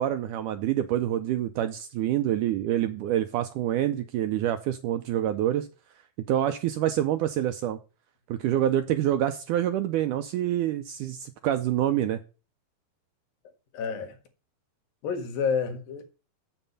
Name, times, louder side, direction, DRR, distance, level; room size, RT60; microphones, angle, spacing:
voice 1, 0.0-5.7 6.3-7.8 8.3-12.2, right 11 dB, 80° right, 1.9 m, -26 dB
voice 2, 13.7-14.2 15.0-16.0, left 6 dB, 70° left, 3.4 m, -29 dB
8.0 x 7.3 x 5.4 m
omnidirectional pair, 4.3 m